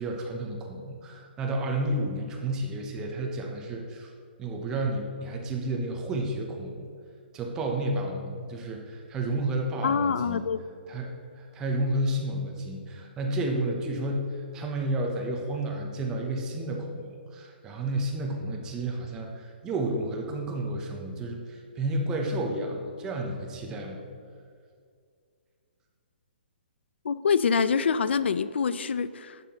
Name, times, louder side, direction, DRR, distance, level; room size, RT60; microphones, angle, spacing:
voice 1, 0.0-4.1 4.4-6.9 7.3-10.5 10.9-24.0, right 1 dB, 10° right, 2 dB, 0.6 m, -31 dB
voice 2, 9.8-10.6 27.0-29.4, left 6 dB, 90° left, 15 dB, 0.3 m, -25 dB
10.5 x 5.5 x 2.9 m, 2.2 s
hypercardioid pair, 170°, 6 cm